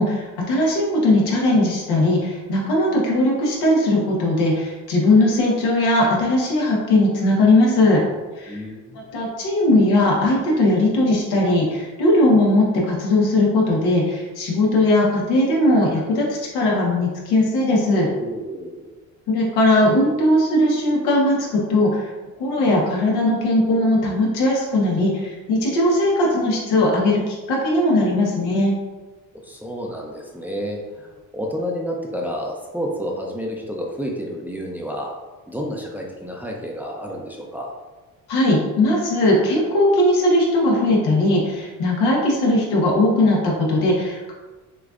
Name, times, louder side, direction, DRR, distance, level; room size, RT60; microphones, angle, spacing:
voice 1, 0.0-8.0 8.4-8.6 9.1-18.1 19.3-22.1 22.4-28.7 38.3-44.3, left 1 dB, 85° left, -3 dB, 1.4 m, -19 dB
voice 2, 8.5-9.0 18.1-18.9 29.4-35.2 35.5-37.7, equal, 5° right, -1 dB, 0.6 m, -30 dB
6.5 x 2.5 x 2.5 m, 1.2 s
cardioid pair, 100°, 37 cm